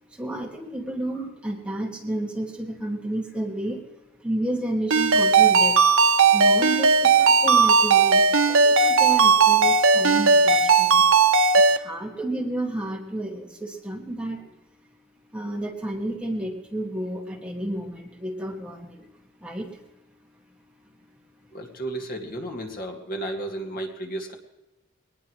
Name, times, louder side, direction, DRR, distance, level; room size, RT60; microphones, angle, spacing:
voice 1, 0.1-3.8 4.2-5.8 6.3-11.1 11.7-14.5 15.3-19.1 19.4-19.9 21.4-21.5, right 1 dB, 5° right, -1 dB, 2.1 m, -31 dB
Ringtone, 4.9-11.8, right 4 dB, 70° right, 0.9 m, -17 dB
voice 2, 21.5-24.3, right 1 dB, 45° left, 2 dB, 2.3 m, -33 dB
22.0 x 19.5 x 3.2 m, 1.0 s
head